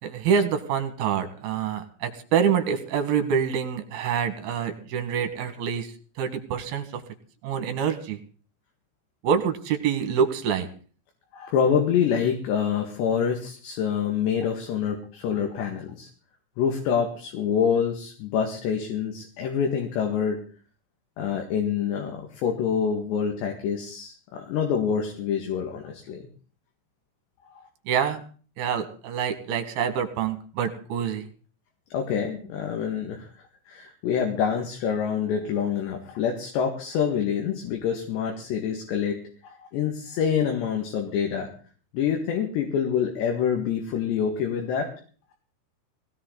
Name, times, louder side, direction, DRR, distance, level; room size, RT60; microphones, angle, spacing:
voice 1, 0.0-7.0 7.4-8.2 9.2-10.7 27.9-28.2 28.6-31.3, right 7 dB, 65° right, 7 dB, 3.2 m, -26 dB
voice 2, 11.3-16.1 16.6-20.4 21.2-26.2 27.5-27.6 31.9-33.3 33.7-41.5 41.9-44.9, left 7 dB, 70° left, 3 dB, 3.8 m, -26 dB
20.0 x 17.0 x 4.0 m, 0.41 s
omnidirectional pair, 5.4 m